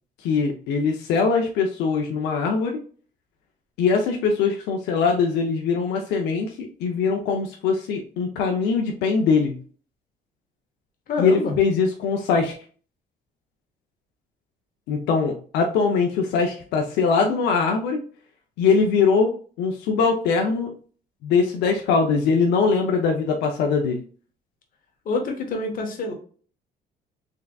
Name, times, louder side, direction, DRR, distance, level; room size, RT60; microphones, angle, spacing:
voice 1, 0.2-2.8 3.8-9.6 11.2-12.5 14.9-18.0 18.6-20.7 21.2-24.0, left 5 dB, 85° left, 2 dB, 0.7 m, -22 dB
voice 2, 11.1-11.5 25.0-26.1, left 3 dB, 55° left, 3 dB, 1.3 m, -26 dB
3.8 x 3.4 x 2.3 m, 0.42 s
cardioid pair, 110°, 17 cm